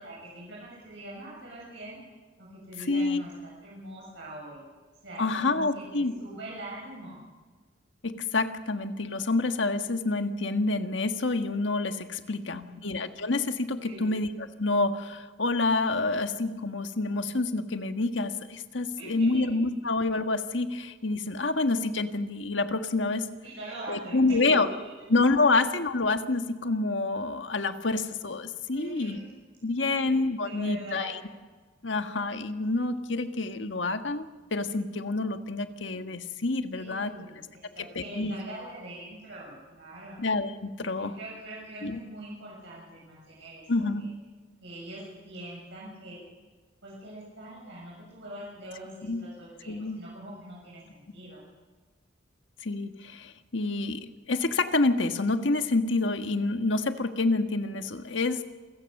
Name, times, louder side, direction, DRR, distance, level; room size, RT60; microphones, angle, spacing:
voice 1, 0.0-2.0 2.4-4.6 5.0-7.2 12.2-12.9 13.8-14.2 16.0-16.2 19.0-19.4 23.4-24.8 27.9-28.0 28.7-29.4 29.8-31.2 36.7-40.3 40.9-44.1 44.6-46.2 46.8-51.4, right 1 dB, 70° right, -5 dB, 7.3 m, -43 dB
voice 2, 2.9-3.2 5.2-6.1 8.0-14.3 14.6-23.3 23.9-24.7 25.1-29.2 29.6-31.1 31.8-34.2 34.5-37.1 37.9-38.4 40.2-41.2 41.8-42.0 43.7-44.0 49.0-49.2 49.7-50.0 52.6-58.4, left 3 dB, 75° left, 8 dB, 1.6 m, -27 dB
28.0 x 16.0 x 6.6 m, 1.4 s
head